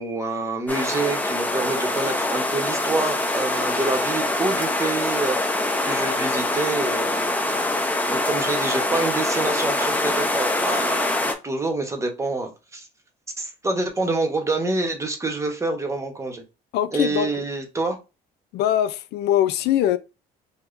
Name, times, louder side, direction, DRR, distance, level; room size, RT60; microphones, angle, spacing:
voice 1, 0.0-7.4 8.1-12.9 13.4-16.4 16.9-18.0, right 2 dB, 15° right, 1.0 m, -27 dB
sound 1, 0.7-11.3, left 2 dB, 10° left, 0.7 m, -24 dB
voice 2, 16.7-17.3 18.5-20.0, left 11 dB, 80° left, 0.4 m, -22 dB
4.7 x 2.2 x 2.5 m
cardioid pair, 110°, 17 cm